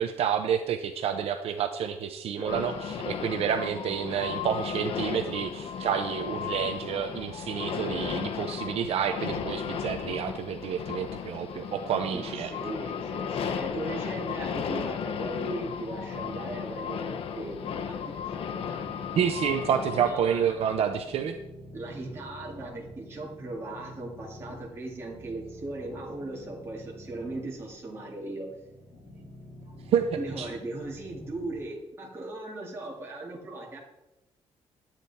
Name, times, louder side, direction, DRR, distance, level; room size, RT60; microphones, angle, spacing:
voice 1, 0.0-12.5 19.2-21.3 29.9-30.5, right 8 dB, 60° right, 7 dB, 0.7 m, -29 dB
sound 1, 2.5-20.1, left 7 dB, 55° left, 0.8 m, -35 dB
voice 2, 12.1-19.3 20.0-20.5 21.7-28.5 29.1-29.7 30.1-33.8, right 2 dB, 20° right, -3 dB, 2.3 m, -38 dB
sound 2, 13.7-31.5, left 1 dB, 35° left, 3.7 m, -48 dB
12.0 x 8.9 x 4.2 m, 0.94 s
cardioid pair, 175°, 11 cm